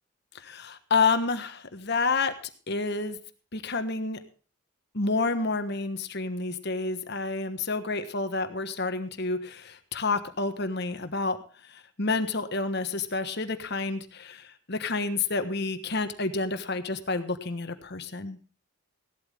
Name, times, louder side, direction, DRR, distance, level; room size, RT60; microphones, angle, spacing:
voice 1, 0.3-2.3 2.7-3.2 3.5-4.2 4.9-11.4 11.6-18.4, left 3 dB, 50° left, 9 dB, 1.4 m, -29 dB
16.5 x 12.5 x 3.5 m, 0.37 s
head